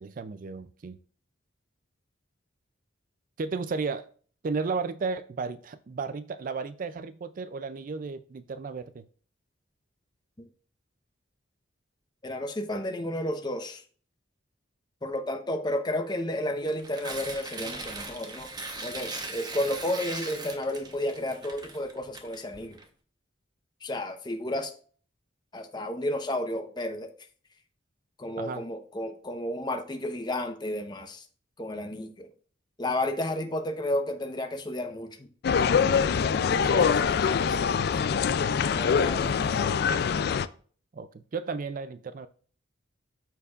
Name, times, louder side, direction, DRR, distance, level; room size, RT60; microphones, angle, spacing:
voice 1, 0.0-1.0 3.4-4.1 4.4-9.0 28.4-28.6 36.7-37.0 40.9-42.3, right 4 dB, 45° right, 13 dB, 0.4 m, -34 dB
voice 2, 12.2-13.8 15.0-18.5 18.8-22.8 23.8-24.7 25.5-27.1 28.2-31.3 31.6-32.3 32.8-35.3 36.2-38.2 38.6-39.7, left 1 dB, 20° left, 6 dB, 0.9 m, -32 dB
Tearing, 16.6-22.8, right 3 dB, 20° right, 1.0 m, -39 dB
sound 1, 35.4-40.5, left 6 dB, 55° left, 0.3 m, -24 dB
13.5 x 4.6 x 2.4 m, 0.44 s
head